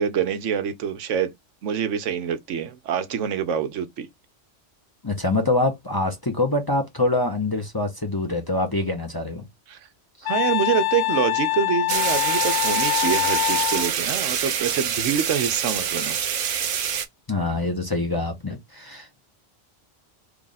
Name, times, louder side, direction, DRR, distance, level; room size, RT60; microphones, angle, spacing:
voice 1, 0.0-1.3 1.6-4.1 9.7-9.8 10.2-16.2, right 8 dB, 85° right, 1.1 m, -26 dB
voice 2, 5.0-9.4 10.2-10.3 17.3-19.2, left 2 dB, 25° left, 0.7 m, -25 dB
Wind instrument woodwind instrument, 10.3-13.9, left 20 dB, 75° left, 0.8 m, -24 dB
sound 1, 11.9-17.1, right 8 dB, 55° right, 0.7 m, -26 dB
3.3 x 2.4 x 3.9 m
omnidirectional pair, 1.2 m